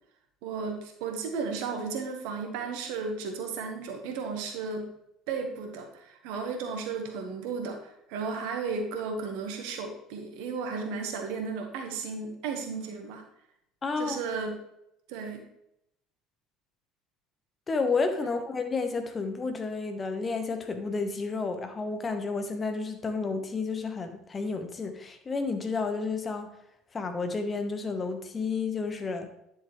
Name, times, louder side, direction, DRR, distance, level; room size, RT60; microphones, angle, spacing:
voice 1, 0.4-4.9 5.3-13.2 14.0-14.5 15.1-15.4, right 5 dB, 65° right, 4 dB, 1.6 m, -34 dB
voice 2, 13.8-14.2 17.7-26.5 26.9-29.3, left 4 dB, 30° left, 7 dB, 1.3 m, -31 dB
10.5 x 6.7 x 3.3 m, 0.79 s
hypercardioid pair, 60°, 0 cm